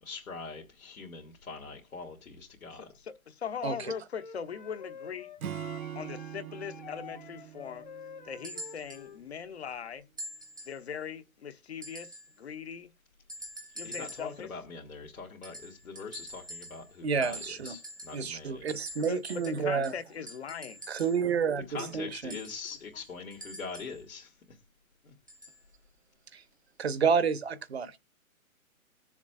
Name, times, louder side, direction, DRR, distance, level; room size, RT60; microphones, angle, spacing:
voice 1, 0.0-2.9 13.8-18.9 21.7-24.6 25.0-25.1, left 4 dB, 75° left, 2.4 m, -43 dB
voice 2, 3.3-5.3 5.9-7.8 8.2-10.0 10.7-12.1 12.4-12.9 13.8-14.5 19.1-20.8, left 7 dB, 50° left, 1.1 m, -40 dB
Wind instrument woodwind instrument, 3.7-9.2, left 7 dB, 35° left, 0.8 m, -48 dB
Acoustic guitar / Strum, 5.4-8.9, right 10 dB, 80° right, 0.9 m, -42 dB
sound 1, 8.4-9.1 10.2-10.8 11.8-12.4 13.3-14.4 15.4-17.0 17.2-18.3 18.7-21.3 22.3-24.0 25.3-25.6 26.5-26.6, equal, 15° right, 0.5 m, -45 dB
voice 3, 17.0-17.8 18.1-19.9 20.9-22.3 26.3-26.4 26.8-28.0, right 6 dB, 50° right, 0.9 m, -29 dB
20.0 x 7.2 x 2.4 m
hypercardioid pair, 165°, 42 cm